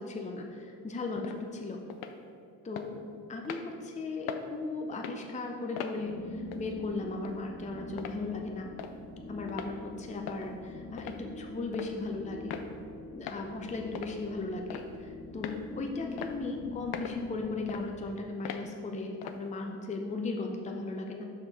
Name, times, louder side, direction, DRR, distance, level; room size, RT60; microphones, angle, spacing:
voice 1, 0.0-1.8 2.6-3.0 3.3-8.7 9.3-12.6 13.1-21.2, left 3 dB, 20° left, 2 dB, 0.6 m, -37 dB
sound 1, 1.2-1.4 1.9-2.2 2.8-2.9 3.4-3.7 4.3-4.5 4.9-5.2 5.8-6.0 6.5-6.7 7.2-7.3 8.0-8.2 8.8-8.9 9.5-9.7 10.3-10.5 11.0-11.2 11.7-11.9 12.5-12.7 13.3-13.4 13.9-14.2 14.7-15.0 15.4-15.6 16.2-16.3 16.9-17.2 17.7-17.8 18.4-18.6 19.2-19.4, left 8 dB, 70° left, 0.6 m, -40 dB
sound 2, 5.9-17.9, left 2 dB, 40° left, 1.5 m, -44 dB
6.1 x 4.9 x 4.2 m, 2.6 s
supercardioid pair, 60°, 40 cm